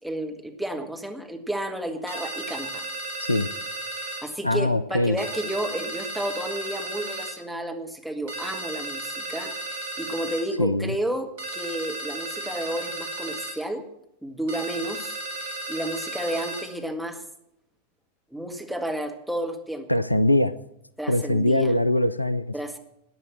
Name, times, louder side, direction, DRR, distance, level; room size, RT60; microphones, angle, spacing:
voice 1, 0.0-2.8 4.0-13.9 14.2-17.2 18.3-19.9 21.0-21.7 22.5-22.8, right 1 dB, ahead, 3 dB, 1.9 m, -32 dB
sound 1, 2.1-4.3 5.2-7.4 8.3-10.5 11.4-13.6 14.5-16.7, right 1 dB, 55° right, 3.8 m, -34 dB
voice 2, 4.4-5.2 10.6-10.9 19.9-20.5 21.1-22.5, left 1 dB, 85° left, 16 dB, 0.5 m, -22 dB
15.0 x 9.8 x 7.3 m, 0.81 s
figure-of-eight pair, 90°, 0 cm